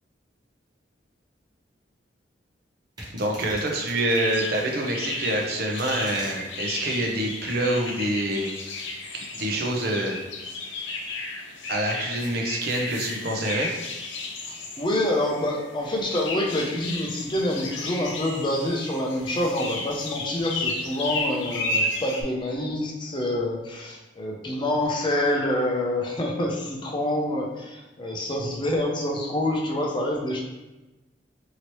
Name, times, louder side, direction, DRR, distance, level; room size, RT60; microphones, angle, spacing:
sound 1, 3.0-4.7 5.4-6.4, right 1 dB, 25° right, 0.9 m, -41 dB
voice 1, 3.1-8.5 9.1-10.2 11.7-13.7, right 1 dB, 55° right, 1 dB, 0.6 m, -26 dB
sound 2, 4.2-22.2, left 2 dB, 85° left, 0.5 m, -33 dB
voice 2, 14.4-30.4, left 1 dB, 25° left, -1 dB, 0.5 m, -27 dB
3.0 x 2.8 x 3.0 m, 1.1 s
head